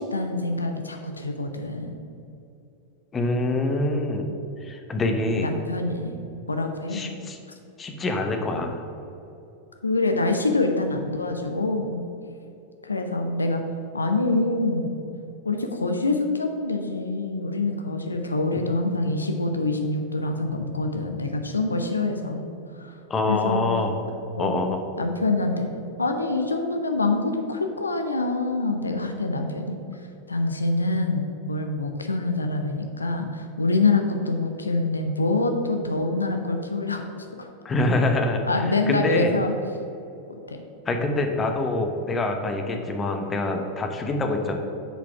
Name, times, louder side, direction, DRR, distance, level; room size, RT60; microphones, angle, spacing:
voice 1, 0.0-2.0 5.4-6.1 6.5-7.1 9.8-12.0 12.8-13.6 13.9-14.9 15.4-22.4 22.8-22.9 23.3-23.6 24.4-24.7 25.0-25.7 26.0-37.0 37.4-37.5 38.5-39.5 40.3-40.6, left 2 dB, 80° left, 5 dB, 0.6 m, -25 dB
voice 2, 3.1-4.3 4.6-5.5 6.9-7.4 7.8-8.8 23.1-23.9 24.4-24.8 37.6-38.4 38.9-39.3 40.9-44.5, left 2 dB, 20° left, 4 dB, 0.9 m, -25 dB
6.7 x 5.0 x 5.9 m, 2.8 s
figure-of-eight pair, 90°, 0 cm